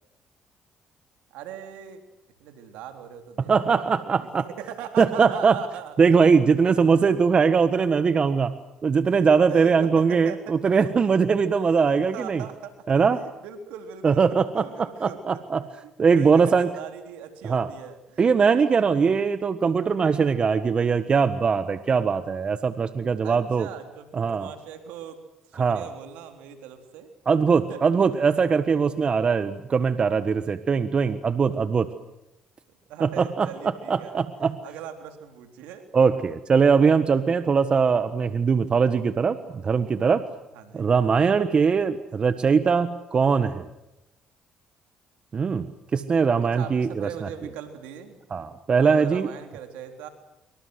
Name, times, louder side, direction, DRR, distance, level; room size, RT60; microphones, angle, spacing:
voice 1, 1.3-2.0 2.4-6.4 7.0-7.1 9.0-10.7 11.7-11.8 12.1-15.4 15.8-18.7 19.3-19.4 23.2-25.2 25.5-27.1 27.7-27.8 32.9-34.2 34.6-35.9 40.5-40.9 41.2-41.7 46.4-48.2 48.8-50.1, right 9 dB, 80° right, 7 dB, 3.7 m, -40 dB
voice 2, 3.5-4.4 5.0-5.5 6.0-8.5 8.8-12.4 12.9-13.2 14.0-15.6 16.0-16.7 17.4-17.7 18.2-23.7 24.1-24.5 25.6-25.9 27.3-31.9 33.0-33.5 33.9-34.5 35.9-40.2 40.7-43.7 45.3-45.7 45.9-47.1 48.3-49.3, right 5 dB, 45° right, 12 dB, 1.5 m, -21 dB
25.5 x 25.0 x 8.0 m, 0.93 s
supercardioid pair, 60°, 2 cm